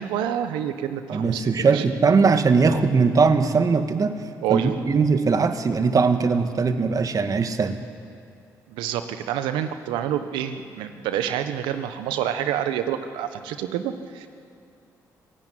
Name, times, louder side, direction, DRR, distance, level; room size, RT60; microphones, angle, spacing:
voice 1, 0.0-1.8 4.4-4.8 8.7-14.3, right 10 dB, 85° right, 9 dB, 1.3 m, -28 dB
voice 2, 1.1-4.2 4.5-7.8, right 4 dB, 45° right, 8 dB, 1.9 m, -20 dB
25.0 x 16.5 x 9.4 m, 2.4 s
hypercardioid pair, 50°, 8 cm